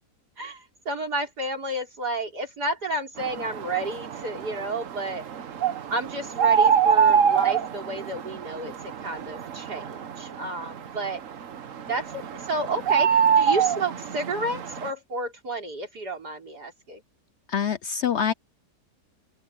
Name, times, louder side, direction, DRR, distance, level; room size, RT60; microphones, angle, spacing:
voice 1, 0.4-5.2 5.9-11.2 11.9-17.0, right 2 dB, 85° right, 4.8 m, -31 dB
sound 1, 3.2-14.9, right 7 dB, 55° right, 1.3 m, -25 dB
voice 2, 17.5-18.3, left 8 dB, 60° left, 0.8 m, -25 dB
open air
omnidirectional pair, 1.7 m